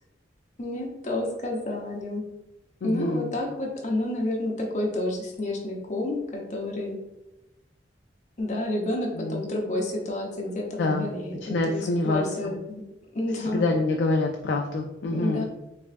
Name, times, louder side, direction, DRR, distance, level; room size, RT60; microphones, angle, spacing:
voice 1, 0.6-2.2 2.8-7.0 8.4-11.4 11.7-12.8 13.1-13.7 15.1-15.4, left 1 dB, 40° left, -1 dB, 0.8 m, -30 dB
voice 2, 2.8-3.3 9.2-9.4 10.8-11.1 11.5-12.5 13.5-15.4, left 2 dB, 70° left, 2 dB, 0.3 m, -26 dB
3.4 x 3.2 x 2.5 m, 0.95 s
head